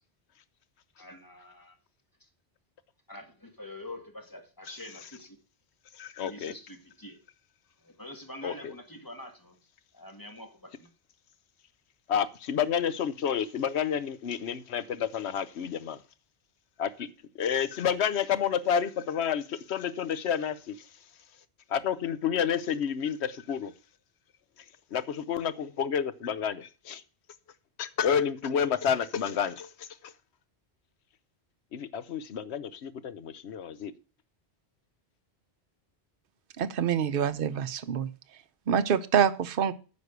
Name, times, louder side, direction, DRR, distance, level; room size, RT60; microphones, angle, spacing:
voice 1, 1.0-1.8 2.2-2.3 3.1-5.4 6.2-7.2 7.8-9.6 9.9-10.9, left 1 dB, 20° left, 2.1 m, -45 dB
voice 2, 6.0-6.5 8.4-8.5 12.1-16.0 16.8-17.1 17.4-20.9 21.7-23.7 24.9-27.0 27.8-30.1 31.7-33.9, left 8 dB, 85° left, 1.1 m, -30 dB
voice 3, 36.6-38.1 38.7-39.7, right 8 dB, 60° right, 0.9 m, -26 dB
9.6 x 5.3 x 8.0 m
omnidirectional pair, 1.1 m